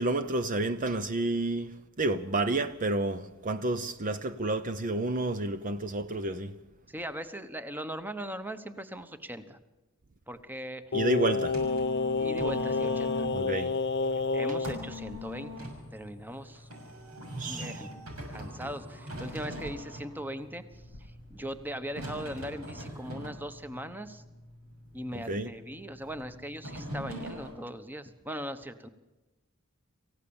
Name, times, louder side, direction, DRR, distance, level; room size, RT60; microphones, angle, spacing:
voice 1, 0.0-6.5 10.9-11.6 13.3-13.7 17.4-17.8 25.3-25.5, right 2 dB, 40° right, 0.7 m, -30 dB
voice 2, 6.9-9.6 10.3-10.9 12.2-13.3 14.1-16.7 17.4-17.9 18.3-24.2 24.9-28.9, equal, 10° right, 1.1 m, -40 dB
Singing, 10.9-14.8 15.1-15.2, left 4 dB, 50° left, 0.7 m, -29 dB
sound 1, 11.4-27.5, right 1 dB, 90° right, 6.5 m, -42 dB
27.0 x 15.5 x 7.2 m
head